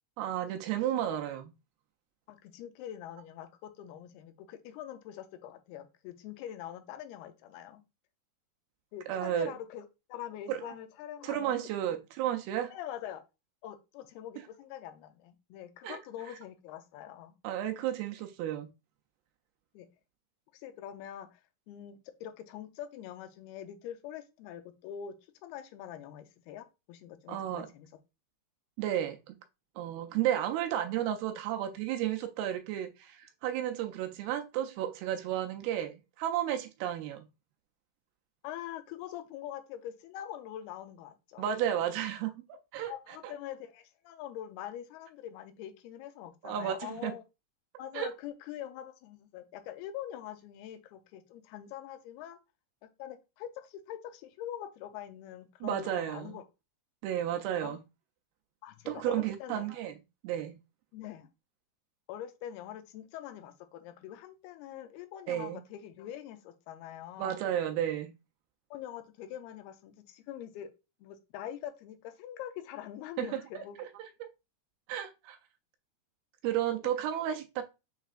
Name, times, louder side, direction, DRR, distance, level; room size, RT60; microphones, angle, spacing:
voice 1, 0.2-1.5 9.1-9.5 10.5-10.6 11.2-12.7 15.8-16.0 17.4-18.7 27.3-27.7 28.8-29.4 29.8-37.3 41.4-42.3 42.7-43.3 46.4-47.1 47.9-48.1 55.6-56.4 57.0-57.8 58.9-59.9 60.2-60.6 65.3-65.6 67.2-68.1 73.2-73.6 74.9-75.4 76.4-77.6, right 11 dB, 80° right, 2.3 m, -33 dB
voice 2, 2.3-7.8 8.9-11.5 12.7-13.2 13.6-17.3 19.7-19.9 20.5-21.4 21.7-25.2 25.4-27.9 38.4-41.5 42.9-47.2 47.8-52.4 53.0-56.4 57.6-57.8 58.6-59.8 60.9-61.3 62.1-67.4 68.7-70.7 71.0-73.8, left 11 dB, 80° left, 2.5 m, -44 dB
6.6 x 3.2 x 2.4 m
omnidirectional pair, 4.5 m